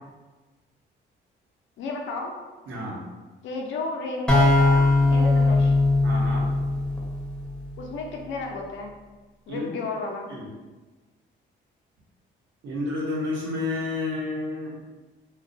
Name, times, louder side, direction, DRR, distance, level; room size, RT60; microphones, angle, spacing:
voice 1, 1.8-2.3 3.4-5.7 7.8-8.9 9.5-10.3, left 3 dB, 75° left, 1 dB, 0.5 m, -32 dB
voice 2, 2.7-3.0 6.0-6.5 9.5-9.7 10.3-10.5 12.6-14.8, left 2 dB, 70° right, -4 dB, 0.8 m, -30 dB
sound 1, 4.3-7.9, left 2 dB, 5° left, 0.6 m, -20 dB
2.2 x 2.1 x 2.5 m, 1.2 s
cardioid pair, 90°, 20 cm